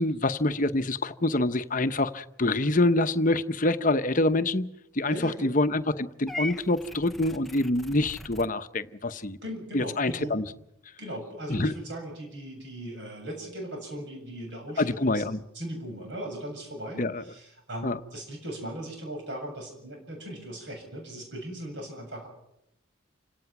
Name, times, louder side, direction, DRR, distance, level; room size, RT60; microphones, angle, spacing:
voice 1, 0.0-9.4 9.7-10.5 11.5-11.7 14.8-15.4 17.0-17.2 17.8-18.0, left 2 dB, 40° left, 0.9 m, -26 dB
voice 2, 5.1-5.5 9.4-10.4 11.0-22.3, right 1 dB, 60° right, 7.4 m, -38 dB
Purr / Meow, 6.3-8.5, left 1 dB, ahead, 0.7 m, -39 dB
29.0 x 18.0 x 6.0 m
head